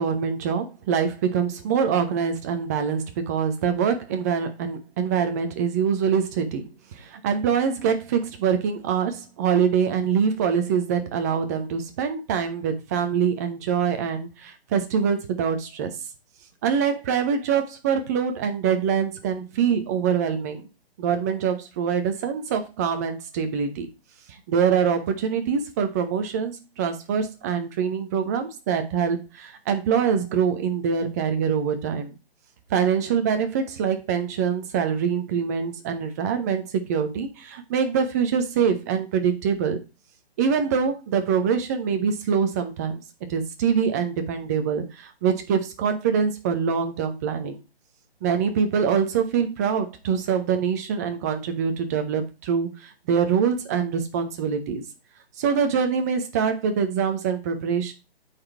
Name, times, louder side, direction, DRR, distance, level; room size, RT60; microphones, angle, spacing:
voice 1, 0.0-6.6 7.0-15.9 16.6-20.6 21.0-23.9 24.5-32.1 32.7-39.8 40.4-43.0 43.3-47.6 48.2-54.8 55.4-57.9, right 7 dB, 15° right, 7 dB, 0.6 m, -24 dB
8.7 x 4.2 x 4.4 m, 0.28 s
figure-of-eight pair, 145°, 31 cm